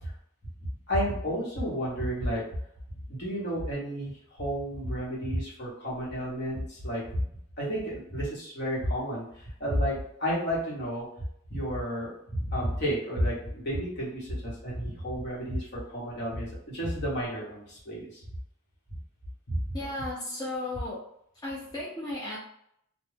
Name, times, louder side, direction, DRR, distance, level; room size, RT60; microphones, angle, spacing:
voice 1, 0.9-2.4 3.1-7.2 7.6-11.1 11.5-18.2 19.5-19.6, equal, 50° left, -5 dB, 1.0 m, -31 dB
voice 2, 19.7-21.0 21.4-22.4, left 2 dB, 20° left, -8 dB, 0.5 m, -35 dB
2.4 x 2.1 x 3.3 m, 0.72 s
head